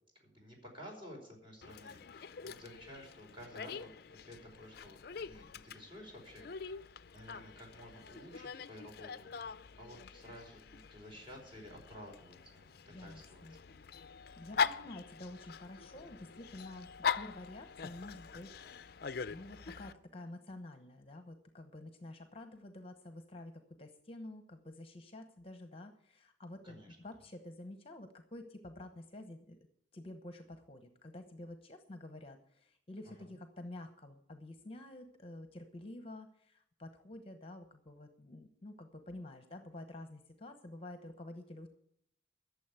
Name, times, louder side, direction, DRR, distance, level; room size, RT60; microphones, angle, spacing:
voice 1, 0.2-3.9 4.2-6.8 7.1-13.7 26.6-26.9 33.2-33.3, equal, 30° right, 1 dB, 4.8 m, -53 dB
Dog, 1.6-19.9, left 6 dB, 55° left, 0.5 m, -42 dB
voice 2, 12.9-13.6 14.4-18.5 19.3-29.6 29.9-41.7, left 1 dB, 30° left, 7 dB, 1.0 m, -49 dB
12.5 x 7.2 x 8.3 m, 0.70 s
head